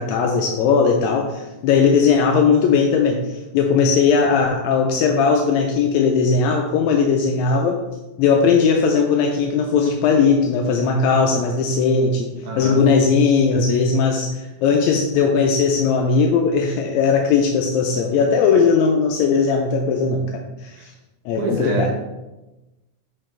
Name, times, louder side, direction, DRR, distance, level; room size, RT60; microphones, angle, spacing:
voice 1, 0.0-7.8 8.2-12.3 12.6-20.9 21.3-21.9, left 5 dB, 80° left, 2 dB, 1.7 m, -18 dB
voice 2, 12.4-12.8 20.8-20.9 21.4-21.9, right 2 dB, 75° right, -2 dB, 3.0 m, -26 dB
7.6 x 4.9 x 3.3 m, 1.0 s
omnidirectional pair, 3.7 m